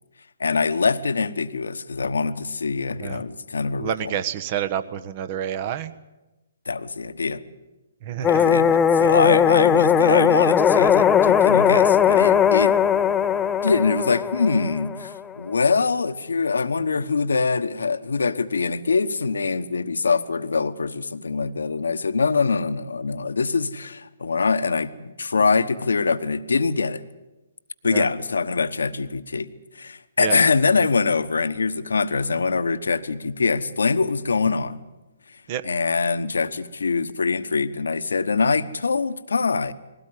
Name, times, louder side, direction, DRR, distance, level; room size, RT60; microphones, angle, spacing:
voice 1, 0.4-4.1 6.7-7.4 8.2-12.7 13.6-27.0 27.8-34.8 35.6-39.7, left 4 dB, 75° left, 13 dB, 1.1 m, -23 dB
voice 2, 3.8-5.9 8.0-8.5 27.9-28.1 30.2-30.4 35.5-35.6, right 10 dB, 40° right, 13 dB, 1.2 m, -28 dB
sound 1, 8.2-15.2, left 8 dB, 15° left, 0.7 m, -18 dB
20.5 x 17.0 x 9.6 m, 1.1 s
figure-of-eight pair, 135°, 0 cm